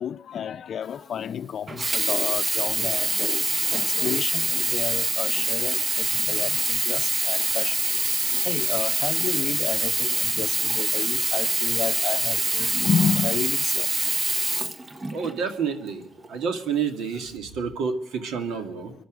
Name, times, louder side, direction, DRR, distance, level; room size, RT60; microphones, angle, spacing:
voice 1, 0.0-7.8 8.4-13.9, left 7 dB, 60° left, 0.6 m, -30 dB
Sink (filling or washing), 1.7-15.4 16.2-16.3, right 2 dB, 25° right, 1.0 m, -25 dB
voice 2, 15.1-16.0 16.3-18.9, right 6 dB, 80° right, 2.1 m, -29 dB
24.0 x 11.5 x 5.1 m
cardioid pair, 90°, 0 cm